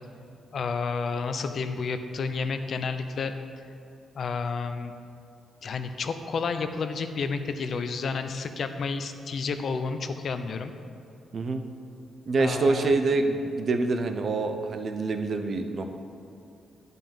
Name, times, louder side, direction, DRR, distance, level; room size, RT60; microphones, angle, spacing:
voice 1, 0.5-3.3 4.1-4.9 5.6-10.7 12.4-12.9, left 5 dB, 60° left, 8 dB, 0.7 m, -30 dB
voice 2, 12.3-15.9, right 3 dB, 55° right, 6 dB, 0.8 m, -26 dB
10.5 x 5.5 x 7.4 m, 2.6 s
cardioid pair, 75°, 0 cm